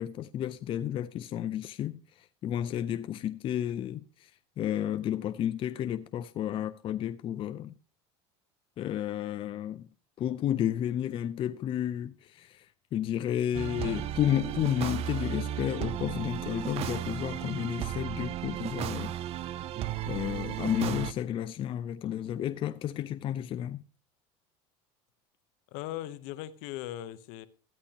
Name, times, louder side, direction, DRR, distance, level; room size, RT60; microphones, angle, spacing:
voice 1, 0.0-4.3 4.6-7.7 8.8-9.9 10.2-12.7 12.9-19.1 20.0-23.8, left 11 dB, 40° left, 0.5 m, -32 dB
sound 1, 13.5-21.1, right 12 dB, 45° right, 0.5 m, -35 dB
voice 2, 25.7-27.5, left 13 dB, 65° left, 0.8 m, -39 dB
13.5 x 9.6 x 2.9 m
supercardioid pair, 110°, 14 cm